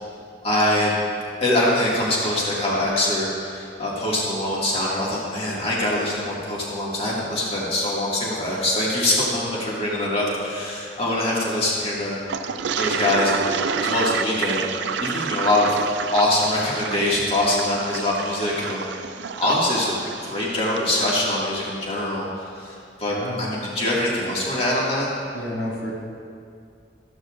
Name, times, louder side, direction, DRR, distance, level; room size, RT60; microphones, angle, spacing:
voice 1, 0.4-0.9 1.4-12.2 12.8-13.5 13.8-14.7 15.0-15.7 16.1-18.9 19.4-25.1, left 1 dB, 35° left, -6 dB, 2.1 m, -23 dB
Toilet flush, 12.3-20.9, right 6 dB, 85° right, 0.4 m, -29 dB
voice 2, 23.1-23.4 25.3-25.9, left 1 dB, 75° left, -5 dB, 2.1 m, -30 dB
14.0 x 12.5 x 2.5 m, 2.3 s
head